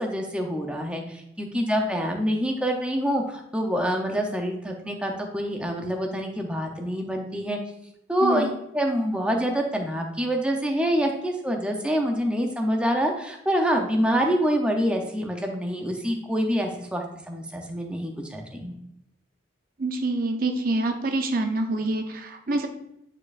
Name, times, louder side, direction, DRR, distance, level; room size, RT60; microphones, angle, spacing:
voice 1, 0.0-7.6 8.1-18.7, equal, 5° right, 2 dB, 0.7 m, -26 dB
voice 2, 19.8-22.7, right 2 dB, 50° right, 5 dB, 0.6 m, -26 dB
8.9 x 4.8 x 2.5 m, 0.81 s
head